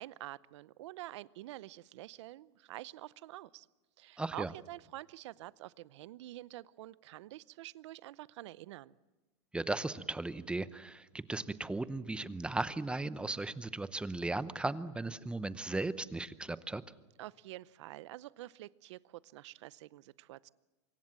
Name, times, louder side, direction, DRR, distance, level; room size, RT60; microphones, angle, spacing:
voice 1, 0.0-3.7 4.0-9.0 17.2-20.5, right 16 dB, 80° right, 20 dB, 0.7 m, -47 dB
voice 2, 4.2-4.5 9.5-16.8, right 2 dB, 5° right, 15 dB, 0.7 m, -36 dB
25.0 x 22.5 x 7.4 m, 1.2 s
supercardioid pair, 135°, 15 cm